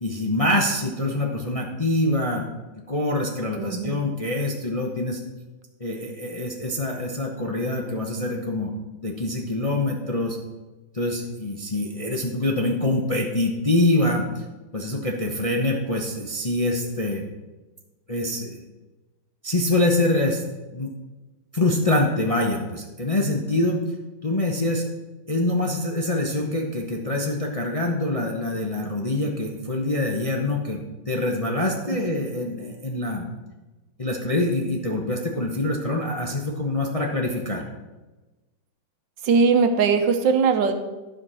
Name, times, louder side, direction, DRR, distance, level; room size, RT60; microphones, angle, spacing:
voice 1, 0.0-2.5 2.9-5.2 5.8-8.7 9.0-10.4 10.9-14.4 14.7-17.2 18.1-18.6 19.4-20.4 20.7-20.9 21.5-23.8 24.2-24.9 25.3-33.3 34.0-37.6, left 1 dB, 30° left, 0 dB, 0.7 m, -25 dB
voice 2, 3.5-4.0 31.9-32.0 39.2-40.7, right 5 dB, 75° right, 7 dB, 1.5 m, -20 dB
11.5 x 5.1 x 6.2 m, 1.2 s
omnidirectional pair, 2.0 m